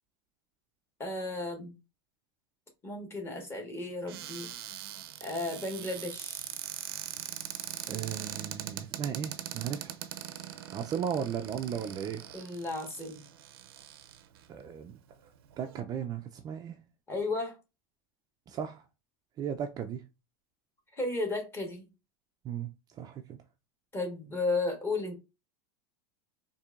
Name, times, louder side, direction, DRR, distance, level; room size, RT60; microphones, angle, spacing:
voice 1, 1.0-1.8 2.8-4.5 5.2-6.5 12.3-13.2 17.1-17.6 20.9-21.9 23.9-25.2, left 2 dB, 20° left, 1.3 m, -34 dB
Cupboard open or close, 4.1-14.4 15.1-15.2 15.5-15.8, right 11 dB, 80° right, 0.5 m, -42 dB
voice 2, 7.9-9.9 10.7-12.2 14.5-15.0 15.6-16.8 18.5-18.8 19.4-20.0 22.4-22.7 23.0-23.4, right 8 dB, 30° right, 0.4 m, -35 dB
4.3 x 2.7 x 2.4 m
supercardioid pair, 120°, 13 cm